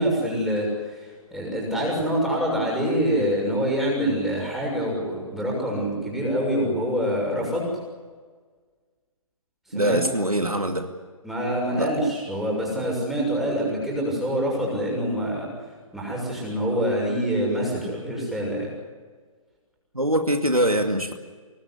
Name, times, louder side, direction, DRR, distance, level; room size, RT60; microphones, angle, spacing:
voice 1, 0.0-7.7 9.7-10.0 11.2-15.5 15.9-18.7, equal, ahead, -3 dB, 6.6 m, -25 dB
voice 2, 9.7-10.9 11.8-11.9 19.9-21.1, right 1 dB, 90° right, 6 dB, 2.4 m, -23 dB
24.5 x 19.0 x 8.3 m, 1.5 s
figure-of-eight pair, 135°, 18 cm